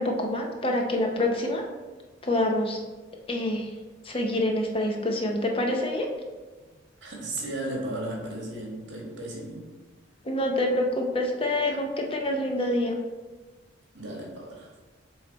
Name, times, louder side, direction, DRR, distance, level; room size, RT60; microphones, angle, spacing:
voice 1, 0.0-1.6 2.2-2.8 3.3-3.7 4.0-6.1 10.2-13.0, left 1 dB, 30° left, 2 dB, 0.6 m, -26 dB
voice 2, 7.0-9.6 13.9-14.7, right 1 dB, 65° right, -1 dB, 1.6 m, -35 dB
7.2 x 3.2 x 4.1 m, 1.3 s
head